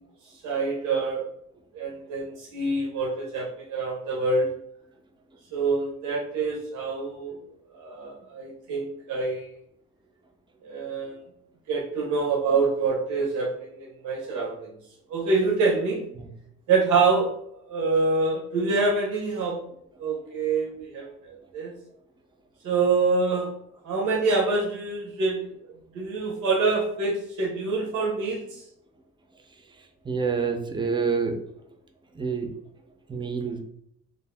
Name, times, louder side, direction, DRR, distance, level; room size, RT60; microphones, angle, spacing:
voice 1, 0.4-1.3 1.7-4.5 5.5-7.4 7.8-9.5 10.6-11.2 11.7-14.7 15.1-16.1 16.7-17.3 17.7-19.6 20.0-21.7 22.6-23.5 23.8-25.5 25.9-28.6, right 3 dB, 80° right, -2 dB, 0.7 m, -26 dB
voice 2, 30.1-31.4 32.1-32.5 33.1-33.6, right 5 dB, 15° right, 5 dB, 0.4 m, -27 dB
2.5 x 2.0 x 3.3 m, 0.71 s
cardioid pair, 90°, 30 cm